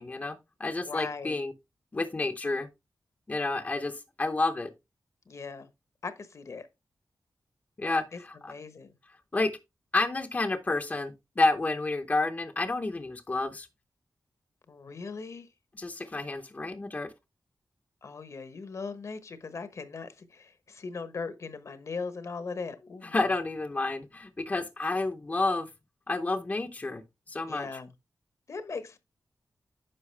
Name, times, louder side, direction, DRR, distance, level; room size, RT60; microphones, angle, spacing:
voice 1, 0.0-1.5 1.9-2.7 3.3-4.7 7.8-8.5 9.3-9.5 9.9-13.7 15.8-17.1 23.1-25.7 26.1-27.0 27.3-27.7, left 2 dB, 25° left, 0.8 m, -30 dB
voice 2, 0.8-1.4 5.3-5.7 6.0-6.7 8.1-8.2 8.5-8.9 14.7-15.5 18.0-23.3 27.5-27.9 28.5-29.0, left 4 dB, 50° left, 1.1 m, -39 dB
9.8 x 6.1 x 3.3 m
wide cardioid pair, 180°, 7 cm